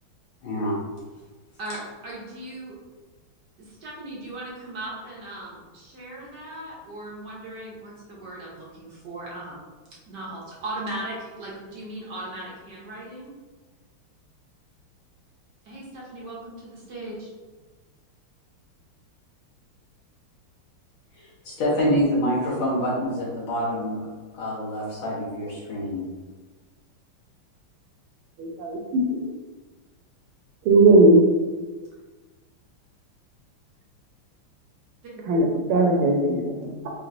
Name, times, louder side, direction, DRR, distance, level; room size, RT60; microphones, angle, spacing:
voice 1, 0.4-0.8 21.1-24.1 24.3-26.0, equal, 70° left, -6 dB, 1.9 m, -26 dB
voice 2, 1.6-2.8 3.6-9.6 10.1-13.3 15.6-17.3 35.1-35.2, right 1 dB, 60° right, -5 dB, 1.3 m, -38 dB
voice 3, 28.4-29.2 30.6-31.2 35.3-36.9, right 2 dB, 80° right, 1 dB, 1.5 m, -18 dB
4.4 x 2.9 x 2.5 m, 1.3 s
omnidirectional pair, 2.4 m